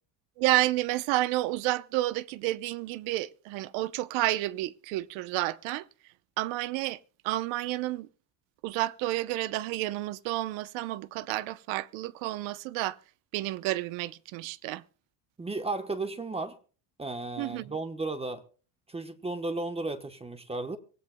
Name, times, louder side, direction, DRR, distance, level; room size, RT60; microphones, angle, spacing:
voice 1, 0.4-5.9 6.4-7.0 7.2-8.1 8.6-13.0 13.3-14.8 17.4-17.7, right 17 dB, 75° right, 0.9 m, -30 dB
voice 2, 15.4-16.6 17.0-18.4 18.9-20.8, right 3 dB, 15° right, 1.0 m, -34 dB
25.0 x 16.0 x 2.2 m
cardioid pair, 135°, 47 cm